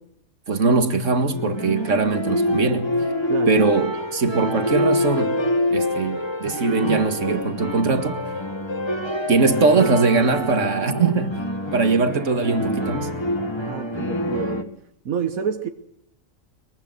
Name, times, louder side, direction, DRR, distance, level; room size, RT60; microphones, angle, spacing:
voice 1, 0.5-2.9 3.5-5.4 5.7-8.2 9.3-11.4 11.7-13.2, right 4 dB, 65° right, 2.2 m, -21 dB
Bach fugue in Gmin, 1.3-14.6, left 1 dB, 20° left, 1.8 m, -26 dB
voice 2, 13.6-14.7 15.0-15.7, right 7 dB, 90° right, 1.6 m, -28 dB
23.5 x 22.5 x 6.3 m
omnidirectional pair, 1.4 m